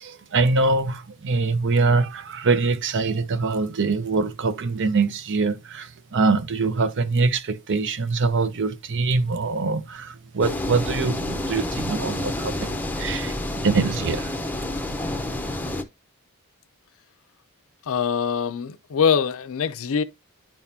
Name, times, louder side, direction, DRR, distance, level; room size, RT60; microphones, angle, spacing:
voice 1, 0.0-14.8, right 3 dB, 55° right, 0.7 m, -24 dB
sound 1, 10.4-15.8, left 1 dB, 10° left, 0.7 m, -29 dB
voice 2, 17.9-20.0, left 7 dB, 65° left, 0.5 m, -23 dB
10.0 x 3.6 x 2.7 m
head